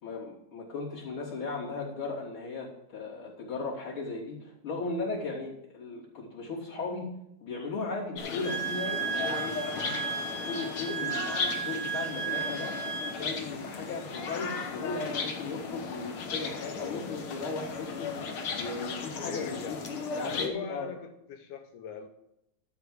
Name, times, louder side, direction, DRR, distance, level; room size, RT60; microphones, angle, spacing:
voice 1, 0.0-7.1 7.4-9.6 10.2-12.7 13.2-18.2 18.6-19.8 20.2-20.9, left 3 dB, 40° left, -6 dB, 4.0 m, -36 dB
sound 1, 8.2-20.5, left 5 dB, 55° left, 1.7 m, -36 dB
Wind instrument woodwind instrument, 8.4-13.2, right 7 dB, 20° right, 0.9 m, -34 dB
voice 2, 19.2-19.8 20.2-22.1, left 7 dB, 90° left, 5 dB, 2.3 m, -40 dB
12.0 x 4.8 x 7.9 m, 0.82 s
omnidirectional pair, 3.5 m